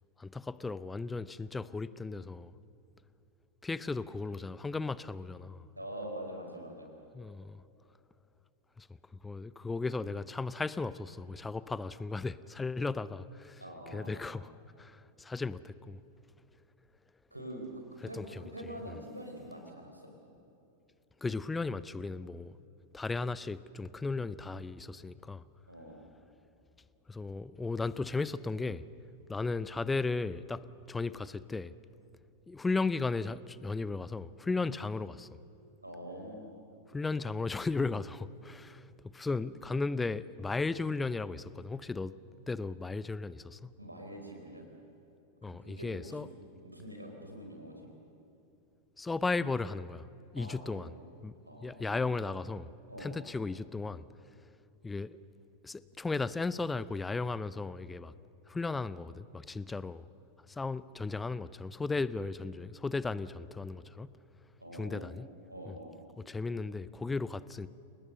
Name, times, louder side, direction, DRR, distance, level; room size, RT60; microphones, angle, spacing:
voice 1, 0.2-2.5 3.6-5.7 7.1-7.6 8.8-8.9 9.2-13.6 13.9-14.5 14.8-16.0 18.1-19.0 21.2-22.5 22.9-25.4 27.1-28.8 29.3-30.6 30.9-31.7 32.5-35.4 36.9-38.9 39.1-42.1 42.5-43.7 45.4-46.3 49.0-50.1 50.3-50.9 51.2-51.4 51.6-52.7 53.0-54.0 54.8-55.2 55.6-58.1 58.5-60.0 60.5-64.1 64.7-65.3 65.7-65.8 66.2-67.7, left 3 dB, 10° left, 0.7 m, -35 dB
voice 2, 5.8-6.9 13.6-14.3 17.3-20.1 25.7-26.1 35.8-36.5 43.8-44.7 45.4-46.3 46.6-47.9 50.4-50.9 51.4-52.2 52.9-53.2 64.6-65.1 65.5-66.0, right 1 dB, 85° right, 4.1 m, -45 dB
30.0 x 19.0 x 6.6 m
figure-of-eight pair, 90°, 0 cm